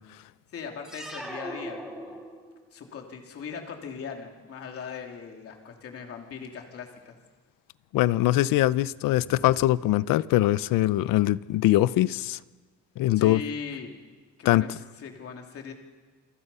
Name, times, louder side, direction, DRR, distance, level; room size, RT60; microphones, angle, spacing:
voice 1, 0.5-2.2 2.7-7.1 9.2-9.6 13.1-14.0 14.4-14.7 15.0-15.7, left 6 dB, 45° left, 3.0 m, -39 dB
sound 1, 0.8-2.7, right 1 dB, ahead, 2.8 m, -39 dB
voice 2, 7.9-12.4 13.0-13.4 14.5-14.6, left 15 dB, 90° left, 0.7 m, -22 dB
28.0 x 24.0 x 5.6 m
cardioid pair, 175°, 32 cm